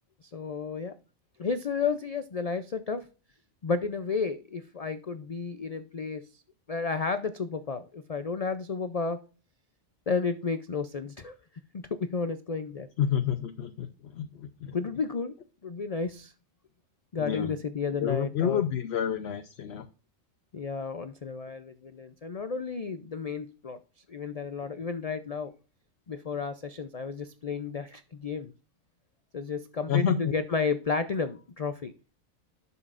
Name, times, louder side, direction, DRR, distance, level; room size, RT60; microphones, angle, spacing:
voice 1, 0.2-0.9 1.4-3.0 3.6-6.4 6.7-9.2 10.1-11.3 11.7-12.9 14.7-15.3 15.6-16.3 17.1-18.6 20.5-23.8 24.1-25.5 26.1-28.5 29.3-31.9, left 5 dB, 75° left, 10 dB, 0.3 m, -32 dB
voice 2, 13.0-14.7 17.2-17.5 18.0-19.8 29.9-30.3, left 8 dB, 60° left, 8 dB, 0.8 m, -29 dB
11.0 x 7.0 x 2.5 m, 0.35 s
omnidirectional pair, 1.4 m